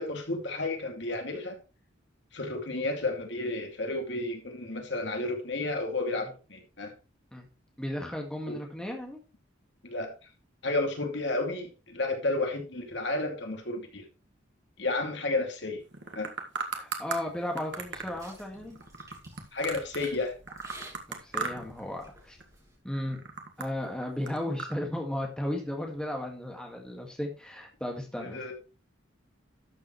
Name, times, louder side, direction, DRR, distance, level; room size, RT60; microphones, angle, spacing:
voice 1, 0.0-1.6 2.3-6.9 8.5-8.6 9.8-10.1 10.6-14.0 14.8-15.8 16.1-16.3 19.5-20.3 28.2-28.5, left 2 dB, 60° left, 3 dB, 2.5 m, -32 dB
voice 2, 7.8-9.2 16.7-18.8 21.1-22.4 22.8-23.2 23.6-28.5, left 1 dB, 5° left, 0 dB, 1.8 m, -35 dB
sound 1, 15.9-17.2 17.6-20.2 20.5-21.8 22.1-22.5 22.9-24.7, right 4 dB, 65° right, 1.8 m, -37 dB
sound 2, 17.9-22.8, right 1 dB, 20° right, 4.4 m, -52 dB
12.5 x 7.3 x 3.2 m, 0.31 s
head